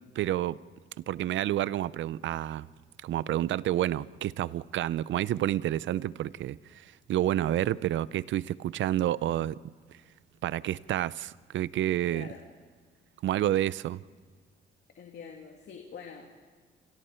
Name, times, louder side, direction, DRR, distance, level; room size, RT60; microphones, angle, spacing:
voice 1, 0.2-0.6 1.0-2.7 3.0-9.6 10.4-12.3 13.2-14.0, right 13 dB, 75° right, 0.6 m, -29 dB
voice 2, 12.1-12.4 15.0-16.3, left 6 dB, 60° left, 2.4 m, -45 dB
29.0 x 27.5 x 4.5 m
cardioid pair, 90°, 20 cm